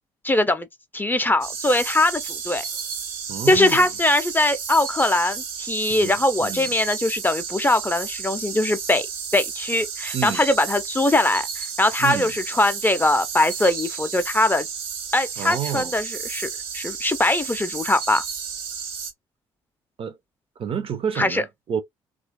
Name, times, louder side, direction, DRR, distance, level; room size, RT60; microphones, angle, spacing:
voice 1, 0.2-0.7 0.9-2.6 3.5-9.1 9.3-14.7 15.1-16.5 16.7-18.2 21.2-21.4, left 2 dB, 15° left, 0.5 m, -21 dB
sound 1, 1.4-19.1, right 6 dB, 70° right, 0.9 m, -32 dB
voice 2, 3.3-3.9 5.9-6.1 6.4-6.7 10.1-10.4 12.0-12.3 15.4-15.9 20.0-20.2 20.6-21.8, right 8 dB, 45° right, 0.6 m, -29 dB
3.0 x 2.4 x 2.7 m
figure-of-eight pair, 45°, 14 cm